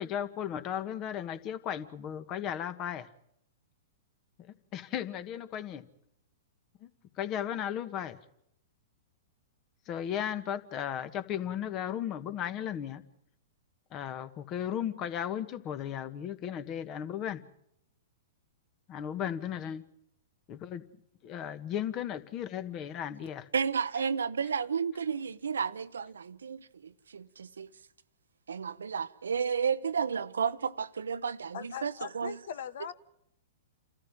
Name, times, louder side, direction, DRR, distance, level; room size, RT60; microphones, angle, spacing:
voice 1, 0.0-3.1 4.7-5.8 6.8-6.9 7.2-8.2 9.9-13.0 13.9-17.4 18.9-19.8 20.5-20.8 21.2-23.5, left 9 dB, 35° left, 1.6 m, -35 dB
voice 2, 23.5-27.7 28.5-32.4, right 6 dB, 80° right, 0.7 m, -32 dB
voice 3, 31.5-32.9, left 8 dB, 65° left, 1.3 m, -40 dB
29.0 x 13.5 x 7.6 m
hypercardioid pair, 110°, 0 cm